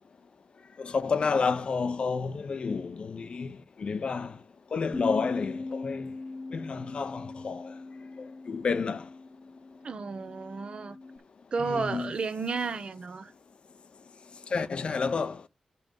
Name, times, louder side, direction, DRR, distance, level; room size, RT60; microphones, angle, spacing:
voice 1, 0.8-4.4 4.7-6.1 6.5-7.7 8.5-9.0 11.7-12.1 14.5-15.4, left 5 dB, 60° left, 0.7 m, -30 dB
Bass guitar, 4.9-11.2, left 3 dB, 25° left, 0.6 m, -40 dB
voice 2, 9.8-11.0 11.5-13.3, right 4 dB, 60° right, 0.8 m, -32 dB
7.6 x 5.4 x 5.3 m
wide cardioid pair, 100°, 2 cm